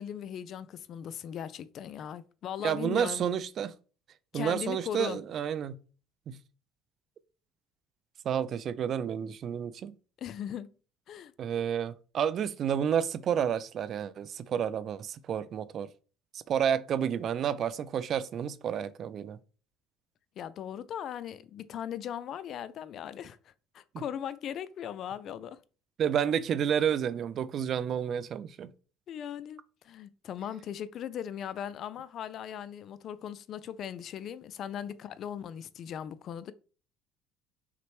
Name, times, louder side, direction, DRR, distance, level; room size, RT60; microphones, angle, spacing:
voice 1, 0.0-3.2 4.3-5.2 10.2-10.7 11.1-11.3 20.4-25.6 29.1-29.6 29.8-36.5, left 9 dB, 50° left, 0.3 m, -38 dB
voice 2, 2.6-3.7 4.3-5.8 6.3-6.4 8.2-9.9 11.4-15.9 16.3-19.4 23.9-24.0 26.0-28.7, right 8 dB, 45° right, 0.3 m, -30 dB
5.8 x 2.1 x 3.0 m
cardioid pair, 115°, 0 cm